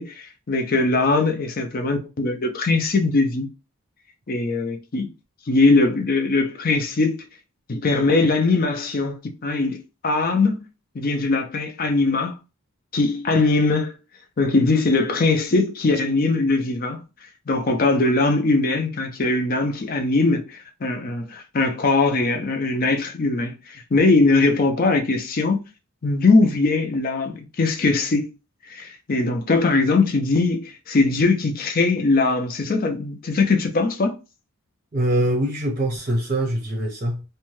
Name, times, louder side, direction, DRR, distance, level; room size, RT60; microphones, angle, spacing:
voice 1, 0.0-3.5 4.3-5.1 5.5-7.3 7.7-10.6 10.9-12.3 12.9-14.0 14.4-17.0 17.5-25.6 26.0-28.3 28.7-34.2, left 3 dB, 40° left, 0.5 m, -21 dB
voice 2, 34.9-37.2, right 1 dB, 35° right, 0.6 m, -23 dB
2.6 x 2.2 x 3.1 m
head